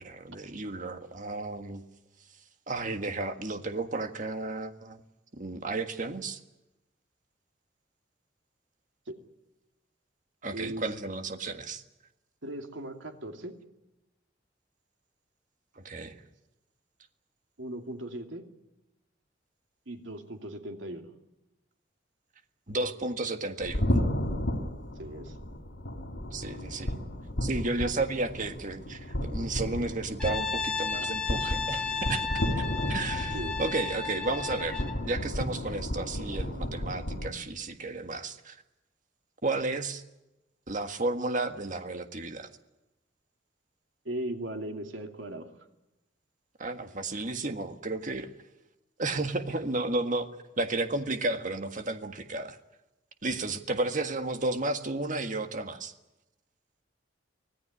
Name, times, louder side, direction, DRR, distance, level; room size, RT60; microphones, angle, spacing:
voice 1, 0.0-1.8 2.7-5.0 5.3-6.4 10.4-11.8 15.7-16.2 22.7-24.0 26.3-26.9 27.4-38.6 39.4-40.0 40.7-42.5 46.6-48.3 49.0-50.3 50.6-52.6 53.2-55.9, right 2 dB, 45° right, 7 dB, 1.7 m, -33 dB
voice 2, 10.5-10.8 12.4-13.6 17.6-18.5 19.9-21.1 25.0-25.4 31.0-31.1 33.3-33.6 44.0-45.5, right 1 dB, 85° right, 4 dB, 2.8 m, -38 dB
sound 1, 23.6-37.3, equal, 90° left, 3.2 m, -33 dB
Brass instrument, 30.2-35.0, left 5 dB, 5° left, 2.6 m, -33 dB
25.0 x 17.0 x 9.9 m, 0.97 s
head